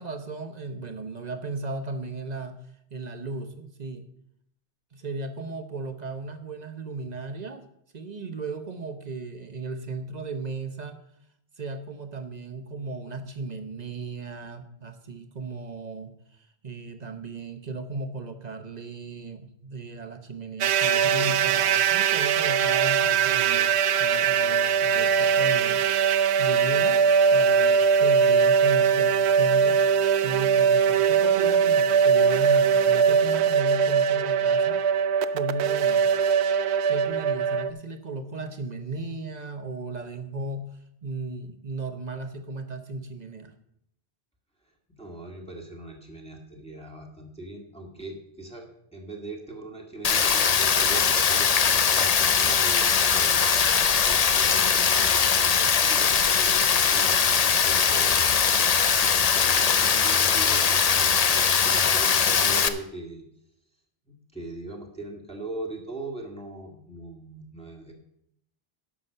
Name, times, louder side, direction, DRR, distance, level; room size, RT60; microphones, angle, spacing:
voice 1, 0.0-2.6 2.9-4.0 4.9-7.7 7.9-11.0 11.6-16.1 16.6-27.0 27.3-29.8 30.2-34.8 35.3-36.0 36.9-43.5, right 3 dB, 45° right, 7 dB, 1.0 m, -36 dB
sound 1, 20.6-37.7, right 6 dB, 90° right, 0.9 m, -21 dB
voice 2, 45.0-48.7 48.9-58.3 59.0-63.2 64.1-67.9, right 2 dB, 5° left, 0 dB, 1.7 m, -40 dB
Rain, 50.0-62.7, left 6 dB, 45° left, 0.6 m, -21 dB
11.0 x 6.1 x 6.7 m, 0.76 s
omnidirectional pair, 1.1 m